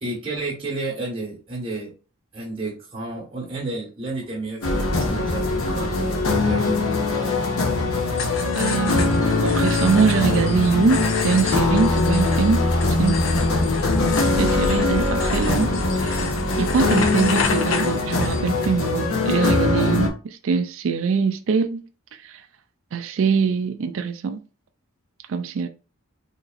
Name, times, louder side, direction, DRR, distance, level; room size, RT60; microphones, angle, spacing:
voice 1, 0.0-1.9 2.3-6.8, right 2 dB, 25° right, 1.3 m, -31 dB
sound 1, 4.6-20.1, left 3 dB, 85° left, 0.8 m, -22 dB
sound 2, 8.1-18.7, left 5 dB, 65° left, 0.5 m, -31 dB
voice 2, 8.6-13.2 14.4-16.2 16.6-21.9 22.2-22.4 22.9-24.4 25.3-25.7, right 5 dB, 65° right, 0.4 m, -23 dB
4.2 x 2.9 x 2.5 m
head